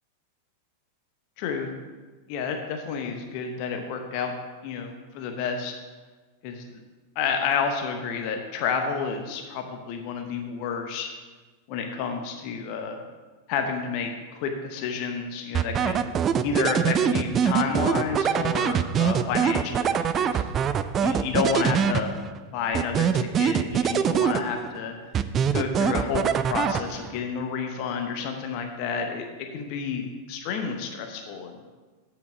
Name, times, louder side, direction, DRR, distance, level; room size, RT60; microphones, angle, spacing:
voice 1, 1.4-1.7 2.3-4.3 4.6-5.8 6.4-6.8 7.1-11.1 11.7-13.0 13.5-16.0 16.4-20.4 21.0-22.2 22.5-25.0 25.5-29.3 29.5-31.6, left 6 dB, 45° left, 4 dB, 0.8 m, -30 dB
sound 1, 15.5-22.4 22.7-24.8 25.1-27.2, right 7 dB, 25° right, 0.4 m, -24 dB
8.1 x 5.1 x 5.7 m, 1.3 s
figure-of-eight pair, 90°, 0 cm